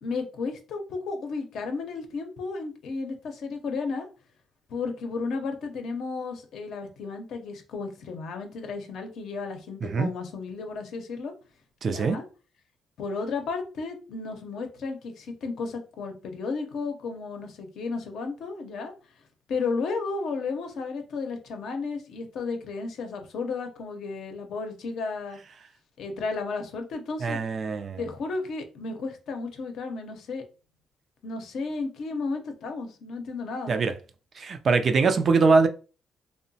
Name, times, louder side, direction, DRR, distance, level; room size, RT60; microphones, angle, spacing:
voice 1, 0.0-4.1 4.7-11.3 11.8-12.2 13.0-18.9 19.5-25.4 26.0-27.4 28.0-30.4 31.2-33.8, left 4 dB, 70° left, 0.6 m, -33 dB
voice 2, 11.8-12.2 27.2-28.0 33.7-33.9 34.4-35.7, right 4 dB, 50° right, 0.3 m, -22 dB
2.9 x 2.0 x 2.6 m
cardioid pair, 90°, 0 cm